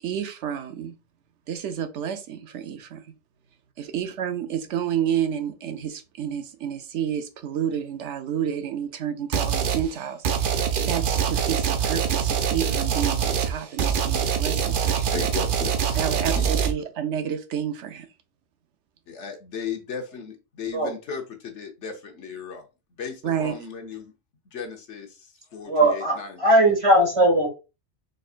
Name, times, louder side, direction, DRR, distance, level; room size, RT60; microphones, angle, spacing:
voice 1, 0.0-1.0 1.5-3.0 3.8-15.1 15.9-18.1 23.2-23.6, right 9 dB, 90° right, 1.0 m, -30 dB
sound 1, 9.3-9.9 10.2-16.7, right 8 dB, 55° right, 0.7 m, -24 dB
voice 2, 14.9-15.9 16.3-16.5 19.1-22.6 23.0-24.1 24.5-26.4, left 6 dB, 85° left, 1.3 m, -36 dB
voice 3, 25.7-27.5, right 1 dB, 30° right, 1.7 m, -19 dB
4.2 x 3.9 x 2.5 m
omnidirectional pair, 1.2 m